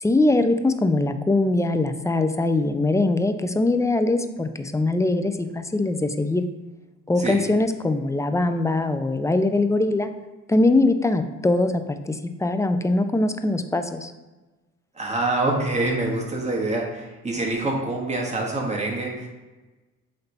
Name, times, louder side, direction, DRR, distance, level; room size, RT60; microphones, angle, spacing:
voice 1, 0.0-6.4 7.1-10.1 10.5-14.1, left 2 dB, 10° left, 8 dB, 0.5 m, -22 dB
voice 2, 14.9-19.3, right 2 dB, 20° right, -1 dB, 1.7 m, -26 dB
8.0 x 3.3 x 4.2 m, 1.2 s
cardioid pair, 90°, 30 cm